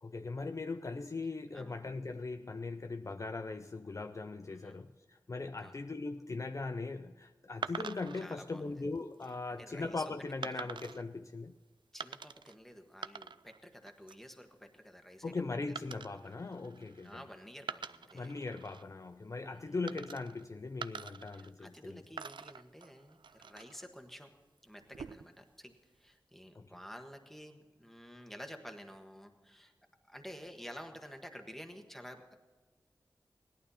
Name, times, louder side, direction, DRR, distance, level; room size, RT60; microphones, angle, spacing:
voice 1, 0.0-11.6 15.2-17.2 18.1-22.0 26.6-26.7, left 3 dB, 45° left, 0.5 m, -40 dB
voice 2, 4.5-4.8 5.6-5.8 8.2-8.7 9.5-10.0 10.5-10.7 11.9-15.8 16.1-16.3 17.0-18.4 19.5-20.2 21.3-24.3 24.6-29.7 30.1-32.4, equal, 5° left, 1.4 m, -51 dB
sound 1, 7.6-8.3 9.0-9.3 10.4-11.0 12.0-12.5 12.9-13.6 13.9-14.3 15.8-17.2 17.6-18.8 19.9-20.4 20.8-21.8 22.2-23.8 24.8-25.4, right 6 dB, 85° right, 0.4 m, -45 dB
17.5 x 11.5 x 4.2 m
wide cardioid pair, 85°, 8 cm